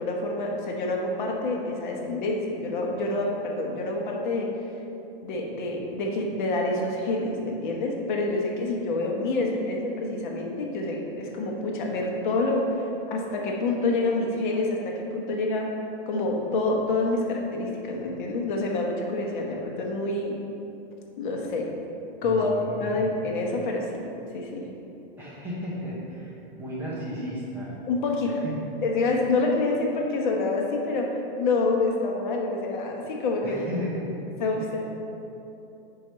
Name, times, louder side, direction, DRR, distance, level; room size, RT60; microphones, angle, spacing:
voice 1, 0.0-4.5 5.2-12.7 13.1-15.7 16.1-20.4 21.2-21.7 22.2-22.5 22.8-24.0 24.3-24.7 27.9-28.4 28.8-33.9 34.4-34.8, left 2 dB, 55° left, 0 dB, 1.0 m, -27 dB
voice 2, 22.2-23.1 25.2-27.7 28.2-28.6 33.4-34.1 34.5-34.8, equal, 5° right, -8 dB, 0.8 m, -35 dB
4.8 x 4.6 x 5.5 m, 2.9 s
supercardioid pair, 165°, 29 cm